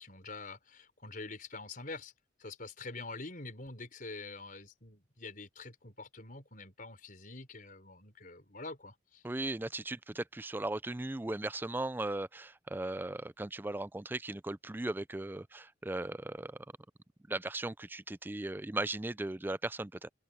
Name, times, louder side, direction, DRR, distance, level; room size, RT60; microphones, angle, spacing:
voice 1, 0.0-2.1 2.4-9.2, left 3 dB, 45° left, 4.9 m, -46 dB
voice 2, 9.2-16.6 17.3-20.1, right 2 dB, 10° right, 0.4 m, -37 dB
open air
head